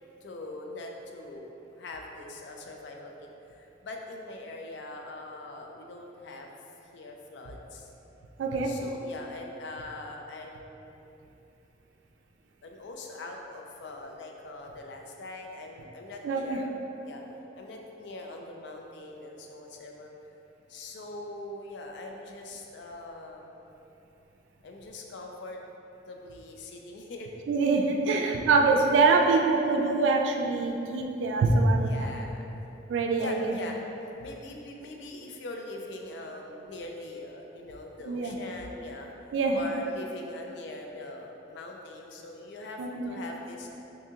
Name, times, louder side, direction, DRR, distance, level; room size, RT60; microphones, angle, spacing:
voice 1, 0.2-3.1 3.5-6.5 6.9-7.9 8.6-11.0 12.6-16.7 17.0-17.2 17.5-20.1 20.7-23.6 24.6-25.6 26.1-27.3 29.3-29.4 31.8-32.5 33.2-33.8 34.2-39.1 39.5-43.7, left 2 dB, 70° left, 1 dB, 0.4 m, -42 dB
voice 2, 8.4-8.8 16.2-16.6 27.5-32.1 32.9-33.5 38.1-38.4 39.3-39.6 42.8-43.1, right 3 dB, 85° right, 2 dB, 0.3 m, -24 dB
2.7 x 2.6 x 3.6 m, 2.9 s
head